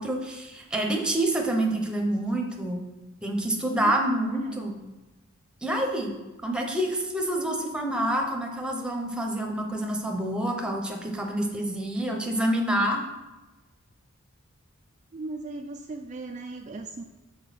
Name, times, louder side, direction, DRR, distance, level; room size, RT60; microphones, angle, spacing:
voice 1, 0.0-2.8 3.2-4.8 5.6-6.1 6.4-13.0, right 1 dB, 5° right, 1 dB, 0.8 m, -27 dB
voice 2, 4.3-4.7 15.1-17.0, right 3 dB, 35° right, 2 dB, 0.4 m, -37 dB
6.1 x 4.4 x 5.9 m, 1.1 s
head